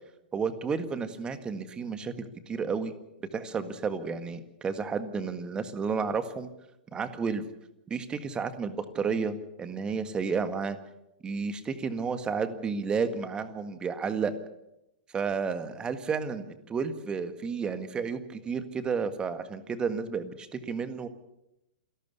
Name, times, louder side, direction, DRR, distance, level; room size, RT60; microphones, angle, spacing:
voice 1, 0.3-2.9 3.3-6.5 6.9-7.4 7.9-10.8 11.2-14.3 15.1-21.1, right 5 dB, 20° right, 11 dB, 1.8 m, -31 dB
28.0 x 12.5 x 8.3 m, 0.87 s
figure-of-eight pair, 105°, 5 cm